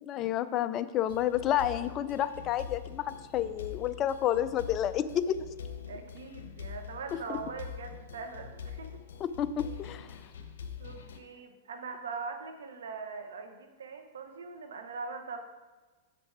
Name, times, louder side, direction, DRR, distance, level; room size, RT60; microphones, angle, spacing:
voice 1, 0.0-5.4 9.2-10.1, left 11 dB, 35° left, 12 dB, 0.4 m, -30 dB
sound 1, 1.1-11.2, left 7 dB, 85° left, 0.8 m, -44 dB
voice 2, 5.9-9.0 10.8-15.4, right 4 dB, 90° right, 6 dB, 0.9 m, -41 dB
6.8 x 5.1 x 4.6 m, 1.3 s
hypercardioid pair, 130°, 0 cm